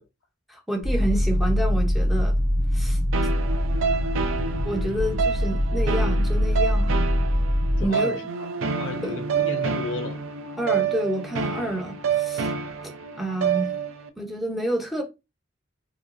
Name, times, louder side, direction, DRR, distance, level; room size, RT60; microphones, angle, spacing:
voice 1, 0.5-2.3 2.7-3.0 4.6-7.0 7.8-8.2 9.0-9.2 10.6-12.5 13.2-13.7 14.2-15.0, right 1 dB, ahead, 0.6 m, -29 dB
sound 1, 0.8-7.9, equal, 70° right, 0.9 m, -23 dB
sound 2, 3.1-14.1, right 6 dB, 90° right, 0.4 m, -28 dB
voice 2, 7.7-10.2 12.6-12.8, left 4 dB, 65° left, 0.4 m, -34 dB
2.9 x 2.2 x 2.5 m
head